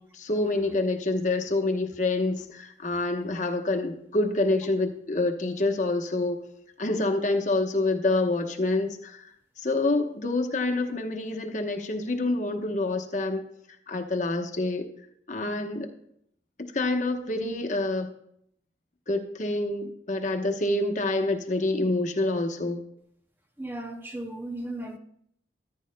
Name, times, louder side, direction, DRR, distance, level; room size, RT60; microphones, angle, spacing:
voice 1, 0.1-6.4 6.8-9.3 9.6-13.4 13.9-14.8 15.3-15.9 16.6-18.1 19.1-22.8, left 2 dB, 45° left, 1.0 m, -27 dB
voice 2, 23.6-25.0, right 1 dB, 10° right, 0.5 m, -35 dB
14.0 x 9.6 x 2.2 m
head